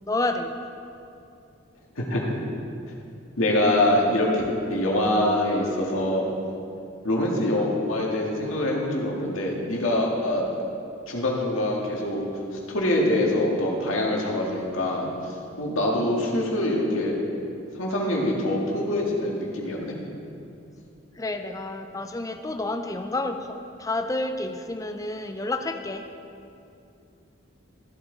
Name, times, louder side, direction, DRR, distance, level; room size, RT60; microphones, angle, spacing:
voice 1, 0.1-0.5 21.2-26.1, left 2 dB, 15° left, 7 dB, 0.5 m, -29 dB
voice 2, 2.0-2.4 3.4-4.4 4.7-6.3 7.0-10.4 11.1-17.2 17.8-20.0, left 1 dB, 85° left, -2 dB, 1.9 m, -24 dB
14.5 x 8.4 x 4.0 m, 2.6 s
head